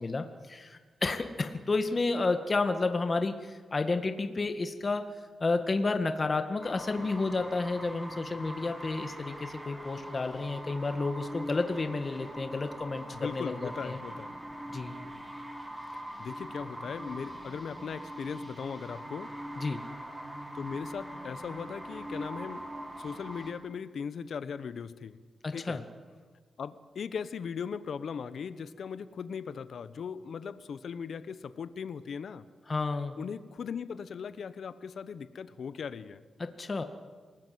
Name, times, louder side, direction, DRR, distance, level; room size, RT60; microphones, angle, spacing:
voice 1, 0.0-5.0 5.4-14.0 14.7-14.9 19.6-19.8 25.4-25.8 32.7-33.2 36.4-36.8, left 3 dB, 35° left, 7 dB, 1.8 m, -31 dB
sound 1, 6.6-23.5, right 1 dB, 15° right, 4.3 m, -42 dB
voice 2, 13.1-14.3 16.2-19.3 20.5-22.6 23.0-25.2 25.5-25.8 26.6-32.5 33.2-36.2, left 6 dB, 70° left, 14 dB, 1.2 m, -38 dB
28.0 x 19.0 x 7.8 m, 1.4 s
cardioid pair, 95°, 0 cm